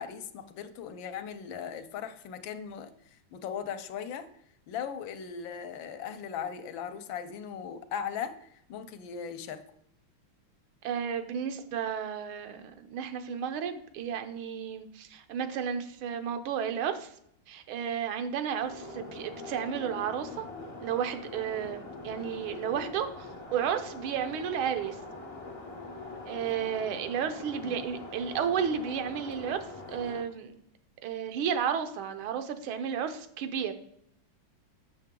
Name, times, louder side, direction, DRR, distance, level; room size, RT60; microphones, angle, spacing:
voice 1, 0.0-4.3 4.7-9.6 27.6-27.8, left 7 dB, 75° left, 10 dB, 1.3 m, -38 dB
voice 2, 10.8-17.1 17.5-20.4 20.8-25.0 26.3-30.5 31.0-33.7, right 8 dB, 85° right, 8 dB, 1.6 m, -32 dB
sound 1, 18.6-30.2, left 3 dB, 35° left, 0.5 m, -43 dB
7.1 x 6.6 x 3.6 m, 0.71 s
omnidirectional pair, 2.2 m